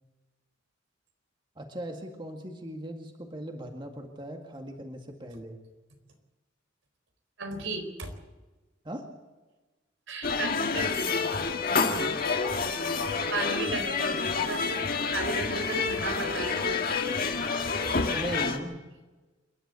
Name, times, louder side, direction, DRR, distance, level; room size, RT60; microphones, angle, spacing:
voice 1, 1.6-5.6 8.8-9.0 11.7-12.2 18.1-18.8, right 1 dB, 25° right, 3 dB, 2.0 m, -38 dB
voice 2, 7.4-8.1 10.1-11.0 13.3-16.7, right 2 dB, 80° right, 6 dB, 4.3 m, -35 dB
sound 1, 10.2-18.6, left 4 dB, 50° left, 1.9 m, -28 dB
28.0 x 11.5 x 8.2 m, 1.2 s
head